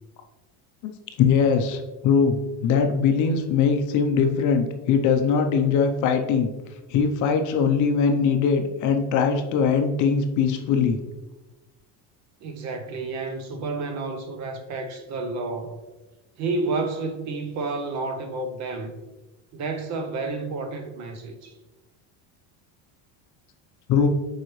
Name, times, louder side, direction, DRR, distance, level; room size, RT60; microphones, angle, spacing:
voice 1, 1.2-6.5 6.9-11.0 23.9-24.1, left 6 dB, 40° left, 0.6 m, -21 dB
voice 2, 12.4-15.8 16.4-18.9 19.5-21.5, right 3 dB, 40° right, 0.6 m, -30 dB
7.6 x 4.8 x 3.1 m
cardioid pair, 170°, 45 cm